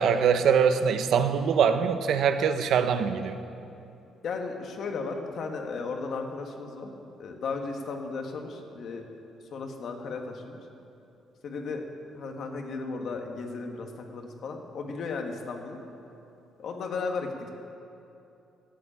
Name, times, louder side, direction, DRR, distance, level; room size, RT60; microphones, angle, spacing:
voice 1, 0.0-3.4, right 7 dB, 75° right, 10 dB, 0.8 m, -23 dB
voice 2, 4.2-6.9 7.2-9.0 9.5-10.6 11.4-11.9 12.1-15.8 16.6-17.5, left 4 dB, 65° left, 3 dB, 1.7 m, -35 dB
13.0 x 8.5 x 8.8 m, 2.7 s
cardioid pair, 90°, 0 cm